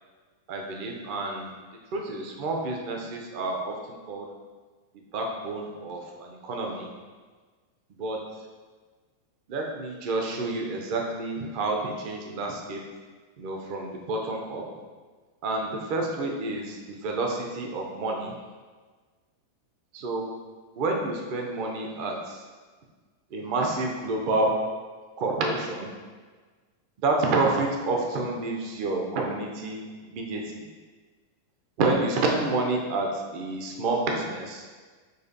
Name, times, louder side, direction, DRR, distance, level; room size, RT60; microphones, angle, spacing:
voice 1, 0.5-1.5 1.9-4.3 5.1-6.9 8.0-8.2 9.5-12.8 13.4-14.6 15.4-18.3 19.9-20.4 20.8-22.4 23.3-24.6 25.2-25.9 27.0-30.7 31.8-34.7, right 2 dB, 45° right, 1 dB, 0.5 m, -29 dB
6.3 x 2.5 x 2.7 m, 1.4 s
figure-of-eight pair, 90°, 0 cm